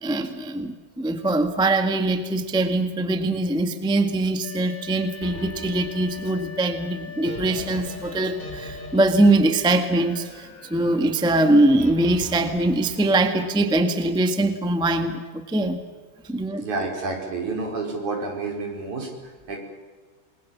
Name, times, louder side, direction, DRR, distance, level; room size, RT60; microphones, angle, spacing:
voice 1, 0.0-15.8 16.2-16.6, right 2 dB, 5° right, 7 dB, 0.7 m, -22 dB
sound 1, 4.4-12.9, left 5 dB, 75° left, 5.1 m, -42 dB
sound 2, 5.2-10.5 11.8-13.7, equal, 15° left, 4.1 m, -40 dB
voice 2, 16.6-19.6, right 3 dB, 60° right, 1 dB, 6.6 m, -29 dB
28.5 x 21.5 x 7.4 m, 1.4 s
omnidirectional pair, 3.9 m